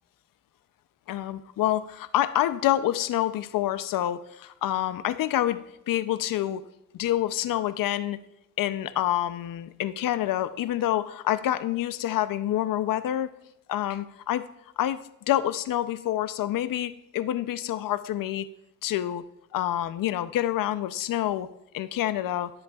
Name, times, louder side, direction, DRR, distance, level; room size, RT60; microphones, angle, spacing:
voice 1, 1.1-6.6 6.9-8.2 8.6-13.3 13.7-14.5 14.8-15.0 15.3-18.5 18.8-19.2 19.5-21.5 21.7-22.5, left 13 dB, 85° left, 13 dB, 0.6 m, -27 dB
14.5 x 7.7 x 2.4 m, 0.83 s
cardioid pair, 70°, 32 cm